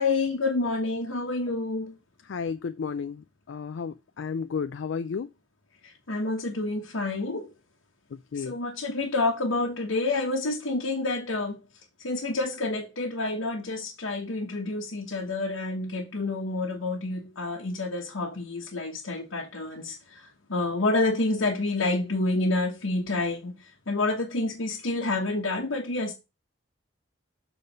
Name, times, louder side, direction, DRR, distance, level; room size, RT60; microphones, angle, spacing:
voice 1, 0.0-2.0 5.8-7.5 8.4-11.6 12.0-26.1, left 2 dB, 85° left, 1.2 m, -28 dB
voice 2, 2.2-5.3 8.1-8.6, left 5 dB, 65° left, 0.4 m, -33 dB
7.2 x 4.1 x 5.1 m
head